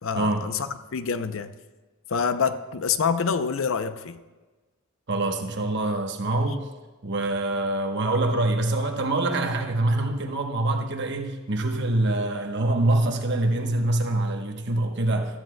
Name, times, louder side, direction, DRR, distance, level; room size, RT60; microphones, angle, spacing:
voice 1, 0.0-1.5 2.1-4.2, left 6 dB, 70° left, 0.6 m, -26 dB
voice 2, 5.1-6.7 7.0-15.4, right 2 dB, 55° right, 1.0 m, -25 dB
15.5 x 13.0 x 2.2 m
head